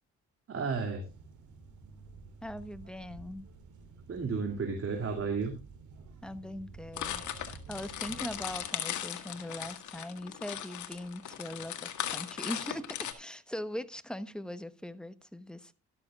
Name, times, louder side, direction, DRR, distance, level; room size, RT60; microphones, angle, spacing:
voice 1, 0.5-1.0 4.1-5.5, right 5 dB, 50° right, 2.6 m, -32 dB
sound 1, 1.0-8.6, right 4 dB, 70° right, 3.2 m, -51 dB
voice 2, 2.4-3.5 6.2-15.7, left 1 dB, 5° left, 1.0 m, -41 dB
sound 2, 7.0-13.1, left 10 dB, 75° left, 1.7 m, -38 dB
13.0 x 12.5 x 2.4 m
cardioid pair, 90°, 30 cm